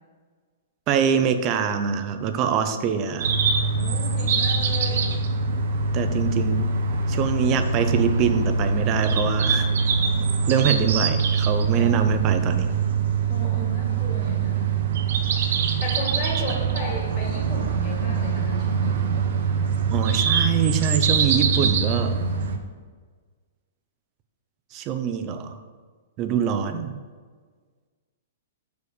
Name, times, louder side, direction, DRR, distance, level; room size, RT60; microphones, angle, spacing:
voice 1, 0.9-3.3 5.9-6.7 7.1-9.7 10.5-12.8 19.9-22.2 24.7-25.6 26.2-27.0, right 7 dB, 25° right, 8 dB, 0.4 m, -24 dB
voice 2, 2.7-3.2 3.8-5.2 11.7-12.6 13.3-14.8 15.8-19.1, left 3 dB, 30° left, -3 dB, 2.2 m, -35 dB
sound 1, 3.2-22.6, right 5 dB, 60° right, 0.8 m, -23 dB
6.6 x 4.9 x 5.0 m, 1.5 s
hypercardioid pair, 165°, 0 cm